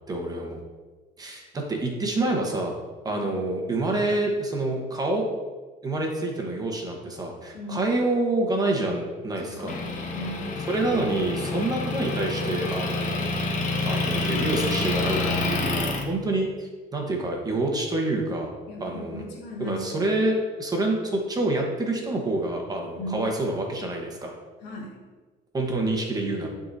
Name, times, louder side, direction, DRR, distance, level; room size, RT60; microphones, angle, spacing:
voice 1, 0.1-0.6 1.2-2.7 3.0-5.2 5.8-9.8 10.7-13.3 13.9-18.5 18.8-19.2 19.6-24.3 25.5-26.5, right 2 dB, 20° right, 0 dB, 1.2 m, -27 dB
voice 2, 7.5-7.9 9.4-10.4 18.7-19.9 22.9-23.3 24.6-25.0, equal, 75° left, -2 dB, 1.9 m, -37 dB
Motor vehicle (road) / Engine, 9.7-16.0, left 2 dB, 45° left, 1.0 m, -28 dB
11.0 x 3.8 x 2.7 m, 1.3 s
cardioid pair, 115°, 18 cm